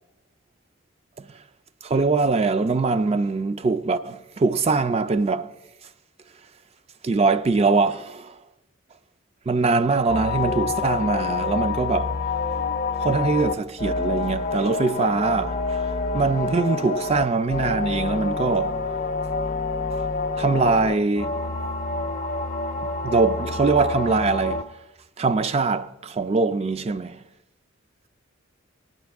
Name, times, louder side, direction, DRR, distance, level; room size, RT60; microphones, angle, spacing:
voice 1, 1.8-5.5 7.0-8.3 9.5-12.1 13.0-15.8 16.1-18.8 20.4-21.4 23.0-24.7 25.2-27.2, right 4 dB, 30° right, 0.3 m, -22 dB
sound 1, 10.1-24.6, left 4 dB, 35° left, 0.5 m, -27 dB
15.0 x 10.5 x 3.4 m
head